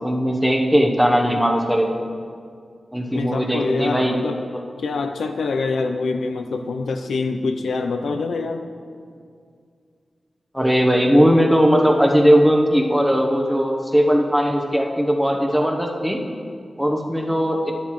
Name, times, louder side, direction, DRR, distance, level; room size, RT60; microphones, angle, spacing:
voice 1, 0.0-1.9 2.9-4.2 4.5-4.6 10.5-16.2 16.8-17.7, equal, 5° right, 1 dB, 0.9 m, -18 dB
voice 2, 3.1-4.4 4.8-8.6, left 4 dB, 85° left, 6 dB, 0.5 m, -25 dB
11.5 x 11.0 x 3.1 m, 2.2 s
wide cardioid pair, 140°, 0 cm